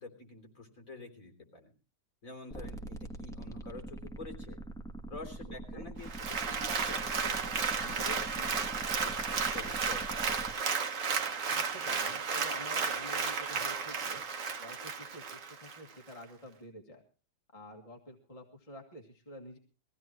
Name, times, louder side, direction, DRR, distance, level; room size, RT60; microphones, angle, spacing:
voice 1, 0.0-1.7 2.2-4.6 5.1-10.2, left 3 dB, 45° left, 2 dB, 3.9 m, -48 dB
sound 1, 2.5-10.5, right 1 dB, ahead, 1.1 m, -44 dB
Applause, 6.0-15.8 16.2-16.3, right 5 dB, 50° right, 1.1 m, -33 dB
voice 2, 11.5-14.2 14.6-17.0 17.5-19.6, equal, 20° left, 1 dB, 2.0 m, -49 dB
22.0 x 15.5 x 3.0 m, 0.34 s
omnidirectional pair, 2.0 m